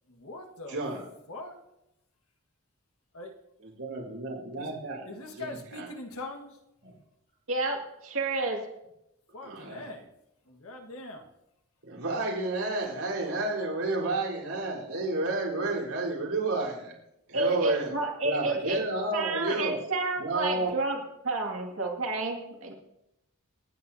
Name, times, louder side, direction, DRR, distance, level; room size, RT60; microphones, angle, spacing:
voice 1, 0.1-0.8 1.3-1.6 3.1-3.3 4.6-4.8 5.0-6.6 9.3-10.1 10.5-11.3 17.4-17.7 18.5-18.6, left 2 dB, 75° left, 4 dB, 1.6 m, -42 dB
voice 2, 0.7-1.0 3.8-5.1 5.4-5.5 5.8-5.9 6.8-6.9 9.4-9.8 11.8-16.9 17.3-17.9 18.2-19.8 20.2-20.7, right 2 dB, 85° right, -4 dB, 4.0 m, -31 dB
voice 3, 7.5-8.6 17.3-18.8 19.1-21.0 21.2-22.7, right 2 dB, 60° right, 1 dB, 2.2 m, -30 dB
28.0 x 9.5 x 2.8 m, 0.86 s
head